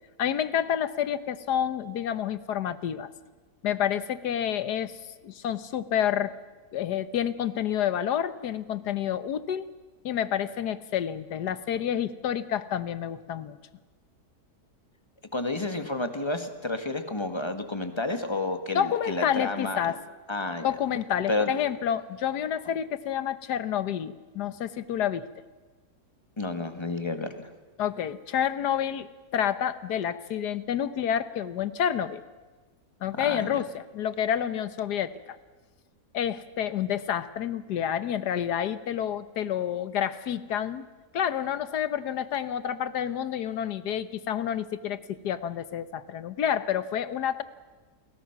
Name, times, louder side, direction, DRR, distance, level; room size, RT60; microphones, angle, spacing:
voice 1, 0.2-3.1 3.6-5.0 5.2-6.3 6.7-9.7 10.0-13.6 18.7-20.0 20.6-25.3 27.8-32.2 33.0-35.4 36.1-40.9 41.1-47.4, left 9 dB, 80° left, 14 dB, 1.6 m, -29 dB
voice 2, 15.3-19.9 20.3-20.7 21.3-21.5 26.4-27.3 33.2-33.6, left 2 dB, 15° left, 7 dB, 1.7 m, -30 dB
29.5 x 21.5 x 6.0 m, 1.3 s
omnidirectional pair, 1.7 m